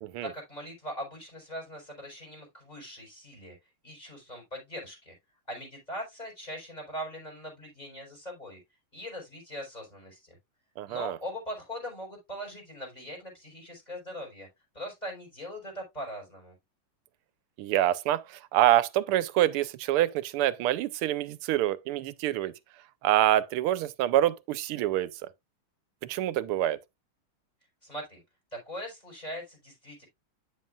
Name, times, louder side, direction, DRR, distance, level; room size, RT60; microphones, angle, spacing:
voice 1, 0.2-3.5 3.8-5.1 5.5-8.6 8.9-10.4 10.9-14.5 14.7-16.5 27.8-28.2 28.5-30.0, equal, 15° left, 4.9 m, -41 dB
voice 2, 10.8-11.2 17.6-22.5 23.0-25.1 26.0-26.8, right 13 dB, 90° right, 1.5 m, -26 dB
9.1 x 7.4 x 2.4 m
omnidirectional pair, 2.4 m